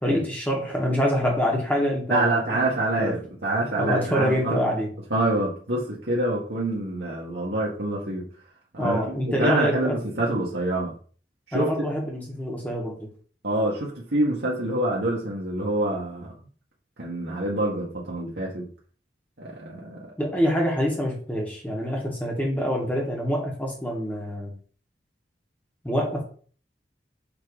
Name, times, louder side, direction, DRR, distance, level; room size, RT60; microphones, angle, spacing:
voice 1, 0.0-2.7 3.0-3.1 3.8-4.9 8.8-9.9 11.5-13.1 20.2-24.5 25.8-26.2, equal, 10° left, -2 dB, 2.1 m, -26 dB
voice 2, 2.1-4.6 5.1-8.3 8.7-9.0 9.3-10.9 11.5-11.7 13.4-16.3 17.0-18.7 19.4-20.0, right 1 dB, 75° right, -5 dB, 1.6 m, -26 dB
7.1 x 3.8 x 5.0 m, 0.44 s
head